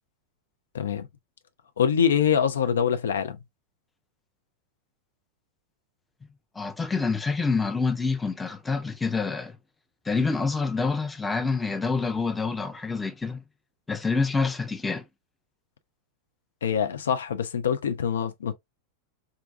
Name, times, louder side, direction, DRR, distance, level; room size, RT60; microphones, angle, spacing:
voice 1, 0.7-1.1 1.8-3.4 16.6-18.5, left 8 dB, 65° left, 0.4 m, -24 dB
voice 2, 6.6-9.5 10.1-13.4 13.9-15.0, left 4 dB, 10° left, 0.5 m, -27 dB
3.7 x 2.3 x 2.4 m
figure-of-eight pair, 90°, 0 cm